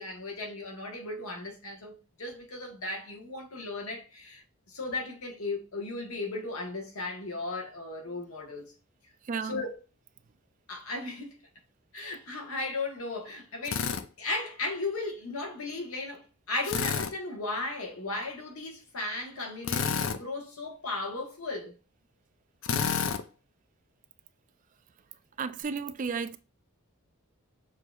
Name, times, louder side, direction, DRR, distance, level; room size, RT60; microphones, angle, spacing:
voice 1, 0.0-8.7 9.5-9.7 10.7-11.4 11.9-21.7, left 2 dB, 75° left, 1.2 m, -36 dB
voice 2, 9.2-9.6 25.4-26.4, right 5 dB, 35° right, 0.3 m, -33 dB
Drill, 13.7-14.0 16.6-17.1 19.6-20.2 22.6-23.2, left 6 dB, 60° left, 0.4 m, -29 dB
6.4 x 2.8 x 2.4 m
head